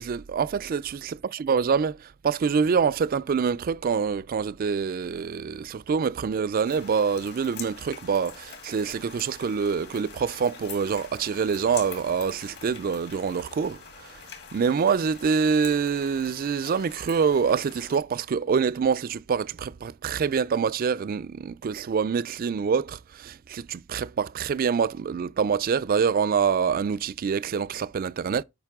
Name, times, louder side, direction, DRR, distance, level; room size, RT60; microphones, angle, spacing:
voice 1, 0.0-1.1 1.4-2.0 2.2-13.8 14.5-28.4, right 6 dB, 45° right, 0.3 m, -25 dB
sound 1, 6.6-18.0, left 6 dB, 55° left, 2.3 m, -44 dB
9.0 x 5.3 x 3.6 m
head